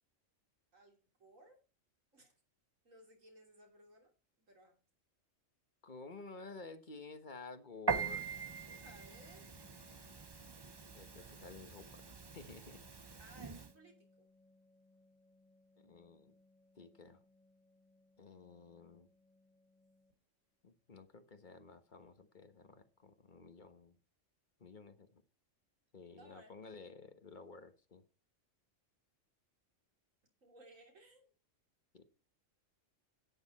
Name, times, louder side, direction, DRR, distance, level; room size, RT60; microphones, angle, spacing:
voice 1, 0.7-1.6 2.1-2.3 2.8-4.1 4.5-4.8 8.7-9.4 13.2-14.3 26.2-26.5 30.4-31.3, right 1 dB, 90° right, 1 dB, 3.5 m, -60 dB
voice 2, 5.8-8.2 10.8-12.0 12.3-12.8 15.8-16.3 16.8-17.2 18.2-19.1 20.6-24.0 24.6-25.2 25.9-28.0 31.9-32.0, left 4 dB, 40° left, 9 dB, 1.4 m, -53 dB
Piano, 7.9-13.7, right 5 dB, 25° right, 0.5 m, -42 dB
sound 1, 8.0-20.1 22.0-22.2 22.5-22.6 23.0-23.1 23.4-23.7, left 2 dB, 65° right, 4.4 m, -67 dB
10.5 x 9.8 x 4.2 m, 0.33 s
omnidirectional pair, 1.3 m